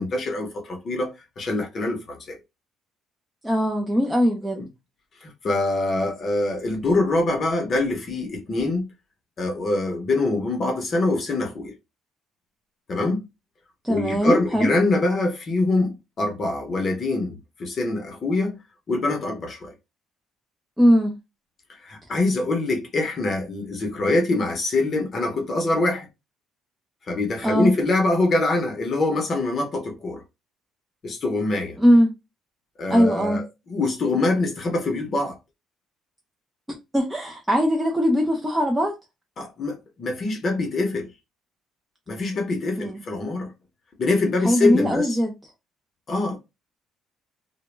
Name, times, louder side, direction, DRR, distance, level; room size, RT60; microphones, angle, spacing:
voice 1, 0.0-2.4 4.6-4.7 5.2-8.9 9.4-11.7 12.9-13.2 13.9-18.6 18.9-19.7 21.7-26.1 27.1-30.2 31.0-31.8 32.8-33.4 33.7-35.4 39.4-41.1 42.1-43.5 44.0-45.2 46.1-46.4, left 2 dB, 35° left, 0.6 m, -24 dB
voice 2, 3.4-4.6 13.8-14.7 20.8-21.1 27.4-27.7 31.8-32.1 32.9-33.4 36.9-38.9 42.8-43.0 44.4-45.3, equal, 5° right, 0.4 m, -20 dB
2.1 x 2.0 x 3.1 m
cardioid pair, 155°, 0 cm